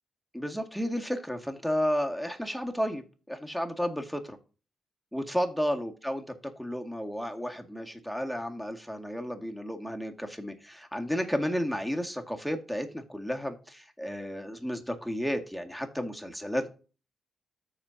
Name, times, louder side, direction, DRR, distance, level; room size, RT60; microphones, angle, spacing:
voice 1, 0.3-4.4 5.1-16.7, equal, ahead, 4 dB, 2.0 m, -32 dB
13.5 x 5.0 x 2.7 m, 0.34 s
supercardioid pair, 50°, 0 cm